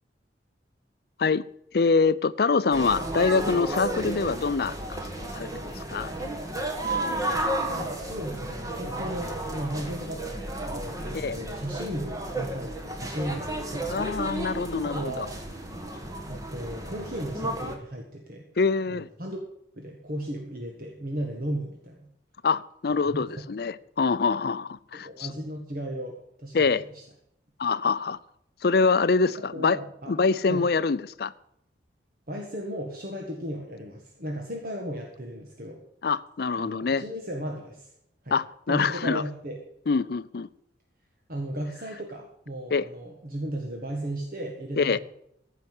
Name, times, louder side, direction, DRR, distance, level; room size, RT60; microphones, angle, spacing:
voice 1, 1.7-6.1 11.1-11.4 13.9-15.3 18.6-19.1 22.4-25.3 26.5-26.8 27.6-28.2 28.6-29.8 30.1-31.3 36.0-37.0 38.3-39.2 39.9-40.5 42.7-42.9 44.8-45.0, left 4 dB, 55° left, 0.5 m, -25 dB
sound 1, 2.7-17.7, right 1 dB, 20° right, 1.5 m, -33 dB
voice 2, 7.6-14.1 14.8-15.4 16.3-18.5 18.9-19.4 19.7-22.1 23.1-23.4 24.9-27.0 29.5-30.2 30.5-30.7 32.3-35.8 36.6-37.9 38.2-38.4 38.7-39.6 41.3-45.0, right 1 dB, 50° right, 1.7 m, -35 dB
15.0 x 5.7 x 8.2 m
head